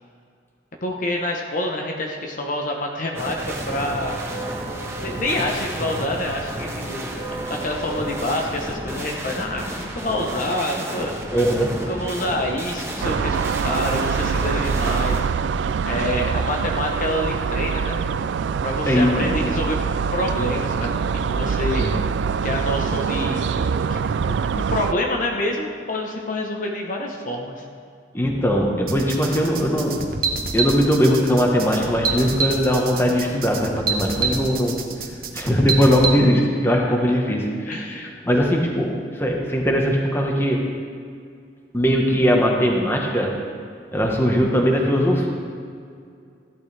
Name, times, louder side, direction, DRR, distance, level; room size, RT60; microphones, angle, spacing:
voice 1, 0.8-4.2 5.0-7.1 7.5-11.1 11.9-15.3 15.8-18.0 18.6-19.8 20.1-21.0 21.2-22.0 22.4-27.6 36.7-37.0 37.7-38.5, left 1 dB, 45° left, 0 dB, 1.0 m, -27 dB
sound 1, 3.1-15.2, right 1 dB, 15° right, 1.3 m, -31 dB
voice 2, 11.3-11.8 15.9-16.0 18.9-19.3 21.8-21.9 28.1-30.0 30.5-34.8 35.3-37.7 38.2-40.6 41.7-43.3 43.9-45.3, equal, 15° left, 0 dB, 1.3 m, -20 dB
sound 2, 13.0-24.9, right 6 dB, 80° right, 0.3 m, -24 dB
sound 3, 28.9-36.1, right 4 dB, 55° right, 1.1 m, -27 dB
15.0 x 11.5 x 3.4 m, 2.3 s
head